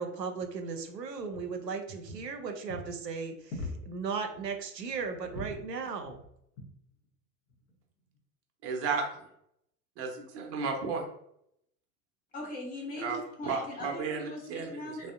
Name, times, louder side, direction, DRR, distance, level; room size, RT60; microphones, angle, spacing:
voice 1, 0.0-6.2, right 5 dB, 90° right, 5 dB, 0.6 m, -36 dB
sound 1, 1.2-1.5 1.9-2.4 2.7-2.9 3.5-4.0 4.3-4.5 4.9-5.6 6.0-6.3 6.6-6.7 7.5-7.7, left 1 dB, 50° left, 0.8 m, -42 dB
voice 2, 8.6-9.1 10.0-11.0 13.0-13.2 13.4-14.7 15.0-15.1, right 5 dB, 30° right, 2 dB, 0.7 m, -33 dB
voice 3, 12.3-15.1, left 1 dB, 20° left, -2 dB, 0.5 m, -40 dB
3.3 x 2.1 x 2.5 m, 0.75 s
figure-of-eight pair, 80°, 48 cm